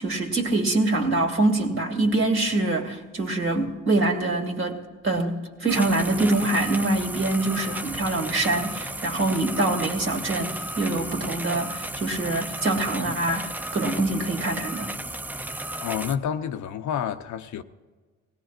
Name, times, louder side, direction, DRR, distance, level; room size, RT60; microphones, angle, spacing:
voice 1, 0.0-14.9, right 2 dB, 45° right, 2.4 m, -25 dB
sound 1, 5.7-16.2, right 1 dB, 5° right, 0.6 m, -34 dB
voice 2, 15.8-17.6, left 8 dB, 70° left, 0.8 m, -29 dB
19.5 x 17.0 x 2.5 m
cardioid pair, 90°, 30 cm